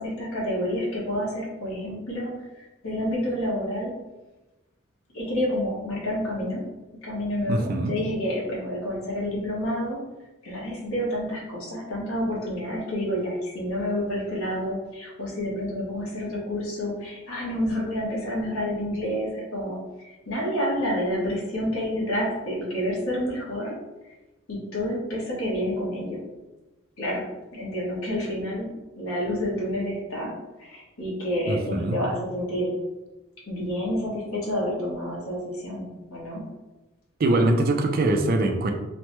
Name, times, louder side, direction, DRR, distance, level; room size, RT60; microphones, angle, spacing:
voice 1, 0.0-3.9 5.1-6.7 7.0-10.0 10.4-19.8 20.0-23.8 24.5-26.2 27.0-30.3 30.6-32.7 33.5-36.5, equal, 75° left, -4 dB, 1.1 m, -29 dB
voice 2, 7.5-8.0 31.5-32.0 37.2-38.7, right 2 dB, 45° right, 4 dB, 0.3 m, -23 dB
3.2 x 2.1 x 3.0 m, 1.1 s
head